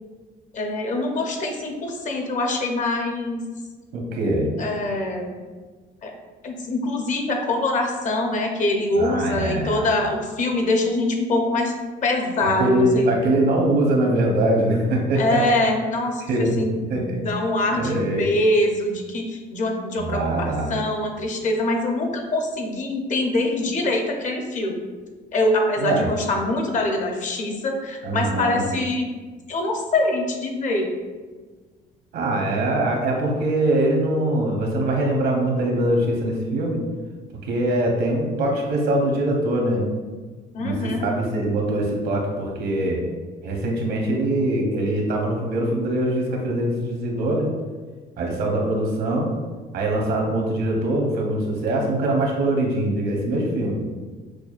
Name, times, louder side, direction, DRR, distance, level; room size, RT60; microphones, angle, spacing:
voice 1, 0.5-3.5 4.6-5.4 6.0-6.1 6.4-11.7 12.0-13.1 15.2-24.8 25.3-29.1 29.5-30.9 40.5-41.1, left 2 dB, 50° left, 2 dB, 0.7 m, -24 dB
voice 2, 3.9-4.5 9.0-9.8 12.4-15.4 16.3-17.2 17.7-18.2 20.0-20.7 25.8-26.1 28.0-28.6 32.1-36.8 37.4-39.8 40.6-43.0 43.4-47.5 48.2-49.3 49.7-53.8, right 1 dB, 75° right, 0 dB, 0.9 m, -23 dB
6.1 x 2.2 x 2.4 m, 1.4 s
cardioid pair, 110°, 17 cm